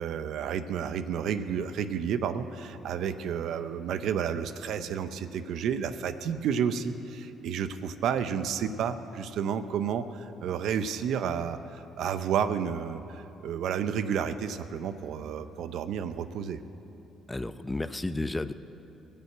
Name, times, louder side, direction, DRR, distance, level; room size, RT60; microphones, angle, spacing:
voice 1, 0.0-16.6, right 7 dB, 70° right, 11 dB, 0.7 m, -31 dB
voice 2, 17.3-18.5, left 2 dB, 15° left, 12 dB, 0.6 m, -32 dB
20.0 x 6.9 x 7.7 m, 2.9 s
supercardioid pair, 65°, 0 cm